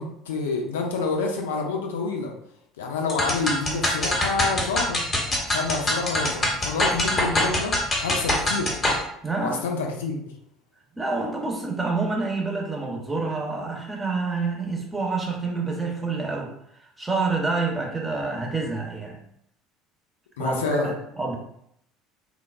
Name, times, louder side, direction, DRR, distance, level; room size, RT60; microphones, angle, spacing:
voice 1, 0.0-2.3 2.8-5.1 5.5-8.8 9.4-10.2 20.4-20.9, left 4 dB, 70° left, 1 dB, 0.3 m, -28 dB
sound 1, 3.1-9.0, left 1 dB, 25° left, 0.8 m, -24 dB
voice 2, 9.2-9.6 10.9-19.2 20.4-21.4, right 3 dB, 15° right, 0 dB, 0.7 m, -27 dB
3.2 x 2.0 x 2.3 m, 0.72 s
figure-of-eight pair, 65°, 0 cm